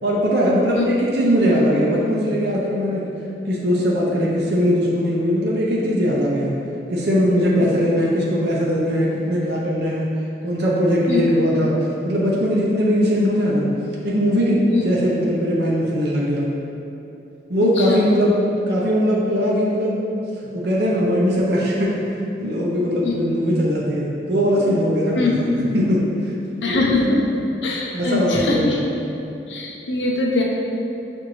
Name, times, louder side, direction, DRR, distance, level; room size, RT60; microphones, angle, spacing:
voice 1, 0.0-3.0 3.5-6.5 6.9-10.1 10.4-11.7 12.0-13.7 14.0-16.5 17.5-18.3 18.7-20.0 20.5-22.0 22.4-26.3 26.7-26.8 27.9-28.7, equal, 60° right, -4 dB, 0.6 m, -20 dB
voice 2, 17.8-18.1 23.0-23.1 25.2-25.5 26.6-27.2 27.6-28.8 29.5-30.4, left 3 dB, 80° left, -3 dB, 0.6 m, -22 dB
5.9 x 2.6 x 3.0 m, 2.8 s
head